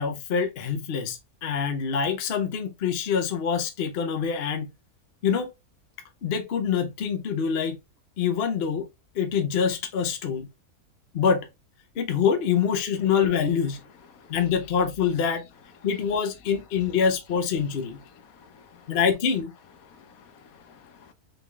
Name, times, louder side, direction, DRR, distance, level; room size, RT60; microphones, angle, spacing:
voice 1, 0.0-4.7 5.2-5.5 6.2-7.8 8.2-8.9 9.1-10.5 11.1-11.5 12.0-13.8 14.3-15.5 15.8-18.0 18.9-19.5, left 7 dB, 50° left, 0.8 m, -25 dB
voice 2, 18.3-19.0 19.9-21.1, left 6 dB, 70° left, 1.1 m, -53 dB
3.9 x 3.4 x 3.3 m
omnidirectional pair, 1.7 m